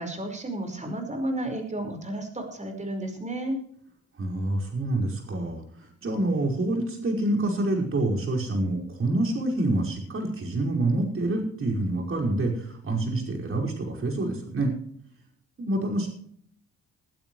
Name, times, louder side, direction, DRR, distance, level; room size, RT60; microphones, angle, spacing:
voice 1, 0.0-3.6, right 1 dB, 25° right, 5 dB, 5.0 m, -32 dB
voice 2, 4.2-14.7 15.6-16.1, right 2 dB, 45° right, 0 dB, 5.5 m, -27 dB
21.0 x 12.0 x 3.2 m, 0.65 s
cardioid pair, 90°, 30 cm